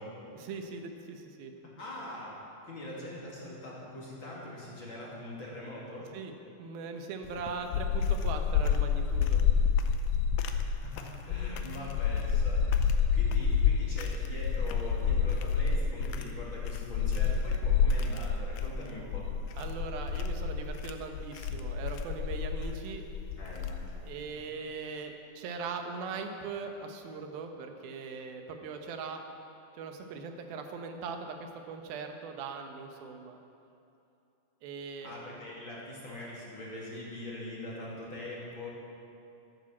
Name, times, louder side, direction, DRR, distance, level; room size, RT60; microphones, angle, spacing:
voice 1, 0.4-1.5 6.1-6.3 6.6-9.4 11.9-12.0 19.6-23.1 24.0-29.2 29.7-33.4 34.6-35.1, right 4 dB, 85° right, 5 dB, 2.9 m, -40 dB
voice 2, 1.8-2.4 2.7-6.1 10.4-19.3 23.3-24.0 24.3-24.4 35.0-38.7, left 1 dB, 35° left, -5 dB, 3.1 m, -43 dB
sound 1, 7.3-24.1, left 6 dB, 85° left, 2.6 m, -29 dB
13.0 x 11.5 x 7.3 m, 2.7 s
omnidirectional pair, 4.1 m